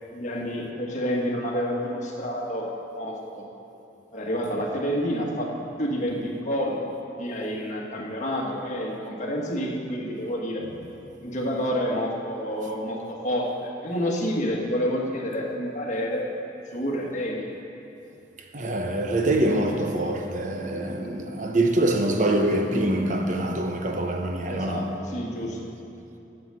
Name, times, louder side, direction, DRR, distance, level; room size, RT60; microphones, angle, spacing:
voice 1, 0.0-2.7 2.9-3.5 4.1-5.5 5.8-6.8 7.2-10.7 11.2-16.3 16.7-17.5 24.5-25.6, equal, 40° left, 1.5 m, -29 dB
voice 2, 18.5-24.9, right 1 dB, 45° right, 0.8 m, -25 dB
9.1 x 8.0 x 7.5 m
head